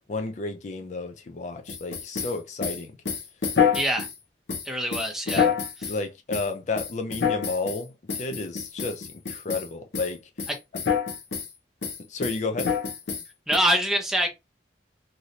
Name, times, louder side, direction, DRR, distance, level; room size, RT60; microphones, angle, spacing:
voice 1, 0.1-3.0 5.3-5.6 5.9-7.9 8.2-10.2 12.1-12.7, left 3 dB, 40° left, 0.4 m, -31 dB
sound 1, 1.7-4.2 4.5-6.0 6.3-6.5 6.8-7.8 8.1-9.7 9.9-10.1 10.4-11.5 11.8-13.6, left 6 dB, 80° left, 0.9 m, -27 dB
voice 2, 3.7-4.1 4.6-5.5 5.8-5.9 13.5-14.3, equal, ahead, 0.6 m, -25 dB
3.1 x 2.6 x 2.7 m
head